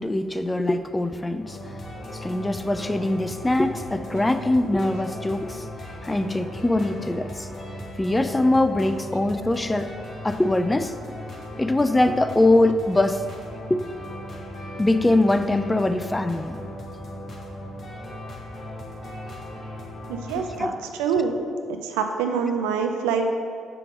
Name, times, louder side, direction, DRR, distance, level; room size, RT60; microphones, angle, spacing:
voice 1, 0.0-1.6 2.1-5.6 6.0-7.5 8.0-9.9 10.2-10.9 11.6-13.2 13.7-13.8 14.8-16.6 20.3-20.8, left 2 dB, 15° left, 10 dB, 0.4 m, -22 dB
sound 1, 1.4-20.6, left 1 dB, 45° left, 1.4 m, -37 dB
voice 2, 20.1-20.7 21.0-21.3 21.8-23.3, right 6 dB, 75° right, 4 dB, 0.5 m, -25 dB
6.8 x 3.5 x 6.2 m, 2.2 s
figure-of-eight pair, 45°, 0 cm